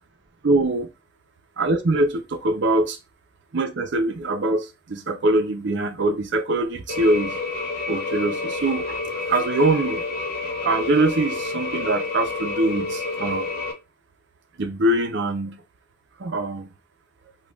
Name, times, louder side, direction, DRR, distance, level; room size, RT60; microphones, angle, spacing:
voice 1, 0.4-0.9 1.6-3.0 3.5-7.4 7.9-9.0 9.3-10.0 10.6-13.5 14.6-15.6 16.2-16.7, right 2 dB, 65° right, 0.6 m, -23 dB
sound 1, 6.9-13.7, left 3 dB, 55° left, 0.8 m, -29 dB
5.1 x 2.3 x 2.3 m
head